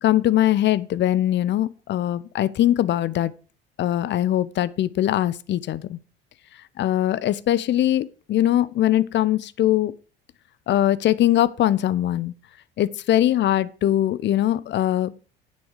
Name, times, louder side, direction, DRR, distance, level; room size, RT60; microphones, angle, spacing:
voice 1, 0.0-3.3 3.8-6.0 6.8-9.9 10.7-12.3 12.8-15.1, left 12 dB, 40° left, 0.8 m, -21 dB
9.5 x 9.4 x 4.9 m
figure-of-eight pair, 60°, 29 cm